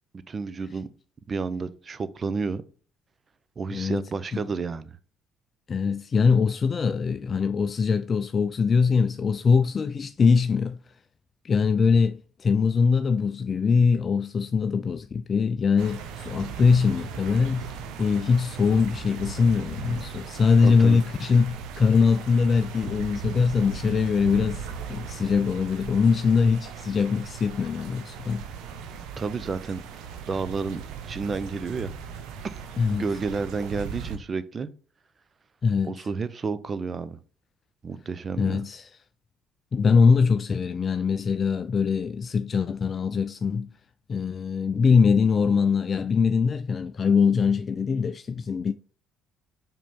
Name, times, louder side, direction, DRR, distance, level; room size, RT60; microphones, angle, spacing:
voice 1, 0.3-0.9 1.3-2.6 3.6-4.9 20.6-21.0 29.2-29.8 30.3-32.5 32.9-34.7 35.8-37.2 37.8-38.6, right 4 dB, 35° right, 0.6 m, -31 dB
voice 2, 3.7-4.0 4.3-4.4 5.7-10.8 11.4-17.7 18.0-28.4 32.8-33.0 35.6-36.1 38.4-38.9 39.7-43.7 44.1-48.7, left 5 dB, 40° left, 0.4 m, -22 dB
sound 1, 15.8-34.2, right 6 dB, 70° right, 0.8 m, -38 dB
5.3 x 5.0 x 3.6 m
hypercardioid pair, 60°, 0 cm